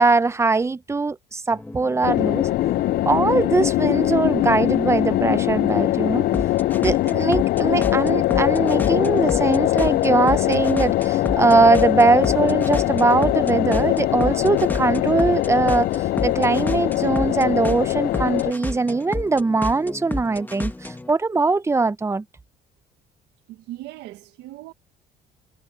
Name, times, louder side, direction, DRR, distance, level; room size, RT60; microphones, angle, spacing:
voice 1, 0.0-2.5 3.1-6.3 6.8-15.9 16.2-22.2, right 3 dB, 15° right, 0.8 m, -21 dB
sound 1, 1.5-21.1, left 2 dB, 10° left, 1.9 m, -33 dB
sound 2, 2.0-18.5, left 16 dB, 60° left, 0.4 m, -22 dB
voice 2, 23.5-24.7, right 15 dB, 90° right, 1.6 m, -38 dB
cardioid pair, 110°, 17 cm